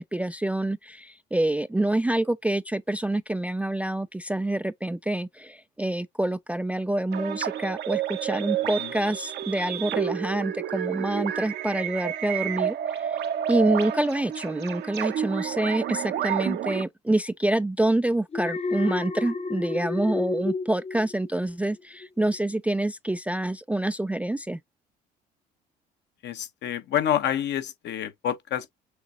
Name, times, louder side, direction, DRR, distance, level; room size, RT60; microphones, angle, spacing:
voice 1, 0.0-24.6, right 1 dB, 5° right, 0.3 m, -27 dB
sound 1, 7.1-16.8, right 10 dB, 55° right, 0.8 m, -30 dB
Alarm, 18.3-21.6 22.0-22.4, left 4 dB, 30° left, 0.8 m, -31 dB
voice 2, 26.2-28.7, left 10 dB, 60° left, 1.0 m, -28 dB
6.6 x 2.8 x 2.5 m
supercardioid pair, 70°, 20 cm